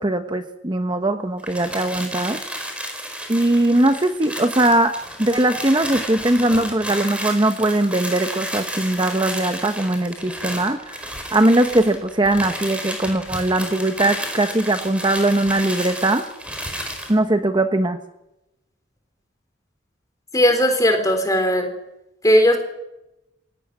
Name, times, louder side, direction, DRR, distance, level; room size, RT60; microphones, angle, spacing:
voice 1, 0.0-2.4 3.3-16.3 17.1-18.0, right 1 dB, 25° right, 7 dB, 1.1 m, -20 dB
sound 1, 1.4-17.2, equal, 5° right, 4.7 m, -32 dB
voice 2, 20.3-21.7 22.2-22.6, equal, 20° left, 5 dB, 4.0 m, -17 dB
23.5 x 17.5 x 9.5 m, 0.91 s
head